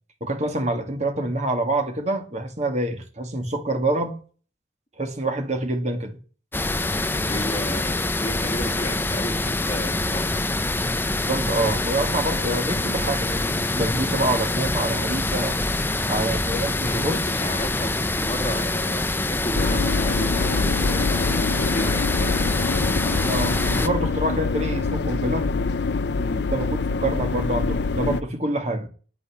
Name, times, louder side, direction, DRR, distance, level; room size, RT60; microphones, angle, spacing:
voice 1, 0.2-4.2 5.0-6.2 11.3-15.6 16.1-17.5 23.2-25.5 26.5-26.7 27.0-28.9, right 1 dB, 40° right, 2.3 m, -26 dB
sound 1, 6.5-23.9, left 2 dB, 10° left, 0.6 m, -25 dB
voice 2, 7.0-10.4 15.9-16.3 16.8-22.1 26.2-26.5, equal, 35° left, 1.6 m, -33 dB
sound 2, 19.5-28.2, left 4 dB, 75° left, 0.6 m, -25 dB
10.0 x 9.5 x 8.5 m
head